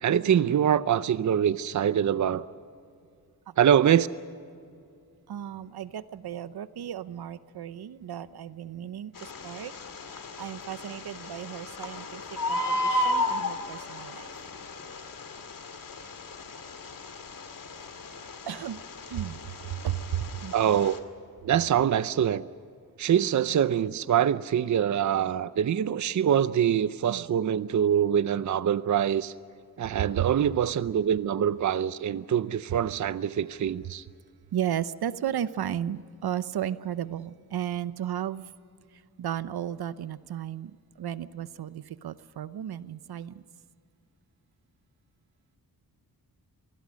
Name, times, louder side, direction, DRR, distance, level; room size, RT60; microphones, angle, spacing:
voice 1, 0.0-2.5 3.6-4.1 20.5-21.0 21.4-22.5 23.0-29.3 29.8-34.0, right 9 dB, 50° right, 15 dB, 0.6 m, -24 dB
voice 2, 5.3-9.7 10.4-12.2 12.5-14.3 18.5-18.8 19.1-20.5 27.1-27.2 30.2-30.3 34.5-38.4 39.2-40.7 41.0-43.3, right 10 dB, 80° right, 14 dB, 0.8 m, -34 dB
Bird, 9.1-21.0, left 1 dB, 60° left, 2.4 m, -34 dB
26.5 x 20.0 x 6.3 m, 2.3 s
wide cardioid pair, 105°, 38 cm